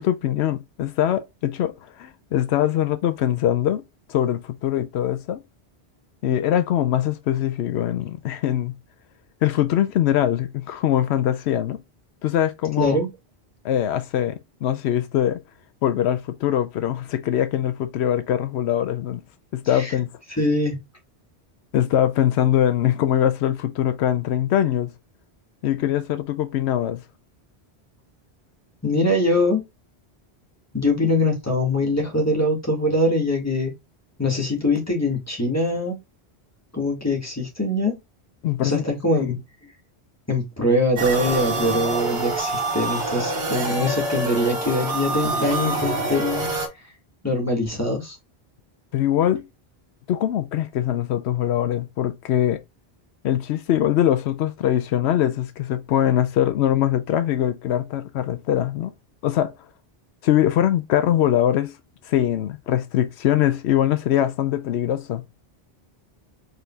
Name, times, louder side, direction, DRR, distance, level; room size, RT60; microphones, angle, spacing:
voice 1, 0.0-3.8 4.1-5.4 6.2-8.7 9.4-11.8 12.2-13.0 13.6-15.4 15.8-19.2 19.5-20.1 21.7-24.9 25.6-27.0 38.4-38.9 39.1-39.4 48.9-49.5 50.1-52.6 53.2-58.9 59.2-59.5 60.2-61.7 62.0-65.2, left 11 dB, 85° left, 0.8 m, -22 dB
voice 2, 12.8-13.1 19.7-19.9 20.4-20.8 28.8-29.6 30.7-33.7 34.2-36.0 36.7-38.0 38.6-39.4 40.3-46.5 47.2-48.2, left 1 dB, 15° left, 1.8 m, -23 dB
sound 1, 41.0-46.7, right 2 dB, 70° right, 1.7 m, -26 dB
4.9 x 3.8 x 2.3 m
omnidirectional pair, 1.1 m